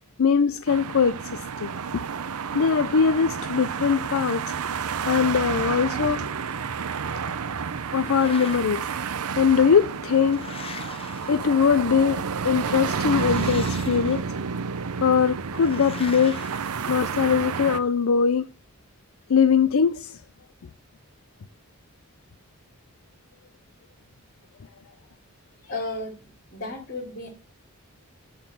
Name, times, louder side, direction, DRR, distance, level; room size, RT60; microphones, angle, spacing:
voice 1, 0.2-2.0 2.5-4.5 5.0-6.3 7.9-8.8 9.4-10.5 11.3-14.3 15.0-16.5 16.9-18.5 19.3-20.2, left 6 dB, 70° left, 0.5 m, -21 dB
sound 1, 0.7-17.8, right 6 dB, 85° right, 0.6 m, -30 dB
sound 2, 7.8-9.0 9.8-12.0 13.1-14.5 15.5-17.4, left 4 dB, 25° left, 1.1 m, -42 dB
voice 2, 25.6-26.2 26.5-27.3, left 2 dB, 45° left, 3.4 m, -33 dB
11.0 x 3.9 x 7.6 m
head